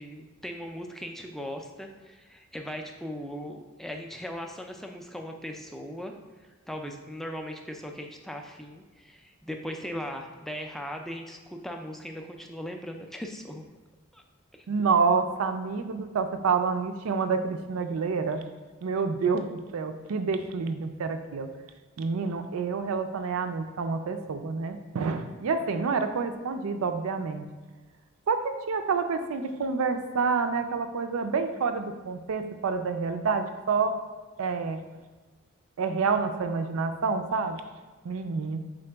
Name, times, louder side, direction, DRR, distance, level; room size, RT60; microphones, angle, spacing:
voice 1, 0.0-6.1 6.7-13.6 14.1-14.2 14.5-14.7, equal, ahead, 3 dB, 0.3 m, -38 dB
voice 2, 14.7-18.4 18.8-19.5 19.7-21.5 22.0-27.4 28.3-33.9 34.4-34.8 35.8-37.6 38.0-38.6, right 5 dB, 80° right, 7 dB, 0.4 m, -28 dB
3.9 x 3.6 x 3.3 m, 1.3 s
head